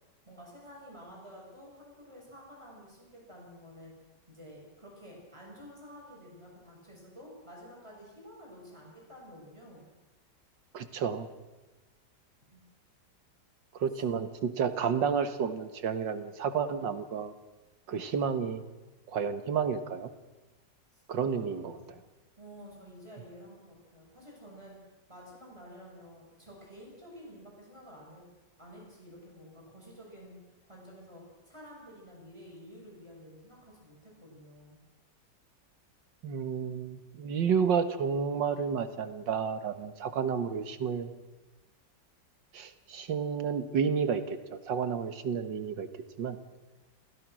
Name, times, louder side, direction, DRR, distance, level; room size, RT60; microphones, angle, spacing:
voice 1, 0.3-3.9 4.3-9.9 12.5-12.6 20.9-21.9 22.4-24.8 25.1-28.2 28.6-30.4 30.7-34.8, equal, 15° right, -3 dB, 7.0 m, -51 dB
voice 2, 10.7-11.3 13.7-17.3 17.9-18.6 19.1-20.1 21.1-21.8 36.2-41.1 42.5-46.4, right 6 dB, 85° right, 10 dB, 2.1 m, -31 dB
27.5 x 16.5 x 6.3 m, 1.1 s
omnidirectional pair, 1.9 m